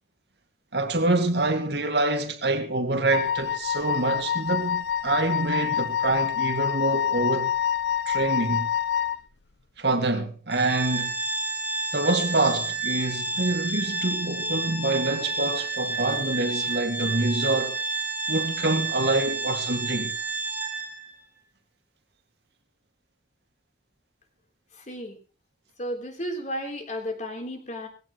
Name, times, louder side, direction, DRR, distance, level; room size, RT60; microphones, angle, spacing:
voice 1, 0.7-7.5 8.1-8.7 9.8-11.2 11.9-17.8 18.3-20.1, right 2 dB, 70° right, 2.3 m, -26 dB
Wind instrument woodwind instrument, 3.1-9.2, left 9 dB, 80° left, 0.8 m, -27 dB
Organ, 10.5-21.1, right 3 dB, 10° right, 2.9 m, -30 dB
voice 2, 24.7-25.2 25.8-27.9, equal, 45° left, 3.7 m, -33 dB
19.5 x 16.5 x 3.1 m
head